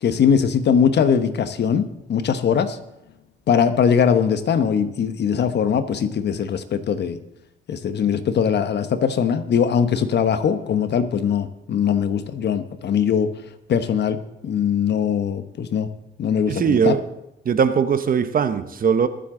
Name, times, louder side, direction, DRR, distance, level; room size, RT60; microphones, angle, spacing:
voice 1, 0.0-2.8 3.5-7.2 7.7-13.3 13.7-15.9 16.2-17.0, left 7 dB, 60° left, 11 dB, 1.1 m, -21 dB
voice 2, 16.5-17.0 17.4-19.1, right 6 dB, 45° right, 11 dB, 0.9 m, -20 dB
22.5 x 7.8 x 3.8 m, 0.87 s
cardioid pair, 90°, 20 cm